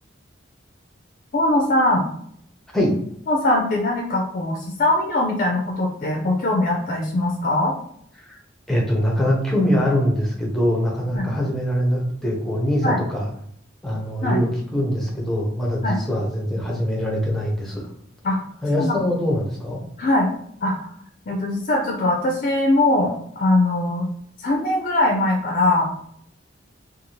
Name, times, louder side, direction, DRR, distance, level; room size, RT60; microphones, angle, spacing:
voice 1, 1.3-2.0 3.3-7.7 11.1-11.3 12.8-13.0 14.2-14.4 15.8-16.0 18.2-18.4 18.7-18.9 20.0-20.3 20.6-20.9 21.3-24.1 24.4-25.9, left 2 dB, 45° left, 1 dB, 0.4 m, -21 dB
voice 2, 8.7-13.3 13.8-17.9 18.6-19.8, equal, ahead, -2 dB, 0.6 m, -23 dB
2.6 x 2.4 x 3.0 m, 0.68 s
head